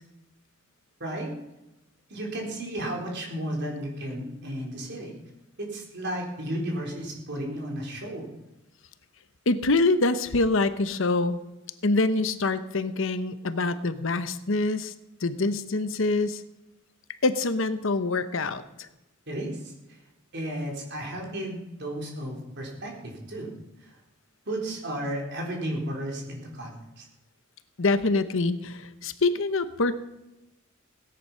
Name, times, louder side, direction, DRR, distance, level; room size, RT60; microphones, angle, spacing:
voice 1, 1.0-1.3 2.1-5.1 5.6-8.3 19.3-19.7 20.3-23.5 23.8-23.9 24.5-27.0, right 1 dB, 55° right, 0 dB, 4.2 m, -33 dB
voice 2, 9.5-11.4 11.8-14.9 15.2-16.4 17.2-18.9 27.8-29.9, left 3 dB, 60° left, 12 dB, 0.9 m, -25 dB
17.0 x 10.0 x 5.7 m, 0.95 s
head